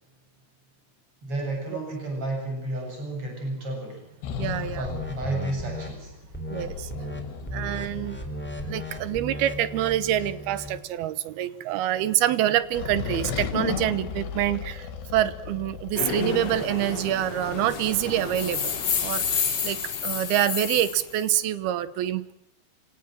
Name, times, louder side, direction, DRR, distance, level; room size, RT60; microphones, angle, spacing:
voice 1, 1.2-4.0 4.8-6.1, right 2 dB, 30° right, 1 dB, 8.4 m, -32 dB
sound 1, 4.2-9.2 12.6-16.0, left 7 dB, 80° left, 4.0 m, -35 dB
voice 2, 4.4-4.9 6.5-6.9 7.5-8.2 8.6-18.7 19.0-22.3, right 12 dB, 70° right, 15 dB, 2.8 m, -26 dB
sound 2, 4.8-5.9 6.3-6.6 6.9-7.2 7.5-10.8, equal, 5° left, 3.3 m, -35 dB
sound 3, 15.9-21.3, left 6 dB, 45° left, 3.6 m, -29 dB
25.5 x 18.5 x 7.7 m, 0.79 s
omnidirectional pair, 4.9 m